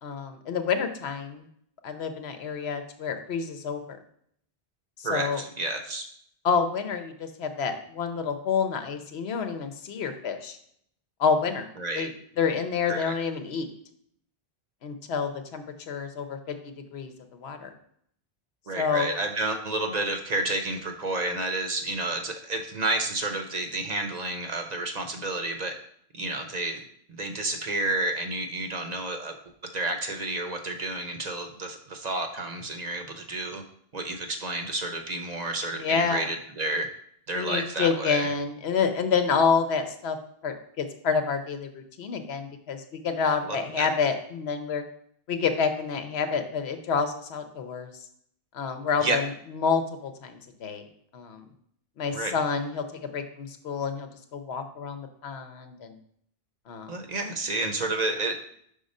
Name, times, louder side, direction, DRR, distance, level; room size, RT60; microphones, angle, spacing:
voice 1, 0.0-1.5 1.8-4.0 5.0-5.4 6.4-10.6 11.2-11.7 12.0-12.1 12.4-13.7 14.8-17.7 18.8-19.1 35.8-36.3 37.3-40.2 40.4-44.8 45.3-47.9 48.5-50.8 51.1-51.4 52.0-56.0 56.7-56.9, left 5 dB, 80° left, 7 dB, 1.0 m, -28 dB
voice 2, 5.0-6.1 11.8-12.1 12.9-13.1 18.7-25.7 26.1-26.8 27.1-29.4 29.7-33.6 33.9-36.9 37.3-38.3 43.4-43.9 49.0-49.2 52.1-52.3 56.9-58.3, right 2 dB, 45° right, 5 dB, 0.7 m, -30 dB
5.5 x 3.8 x 5.3 m, 0.67 s
omnidirectional pair, 1.1 m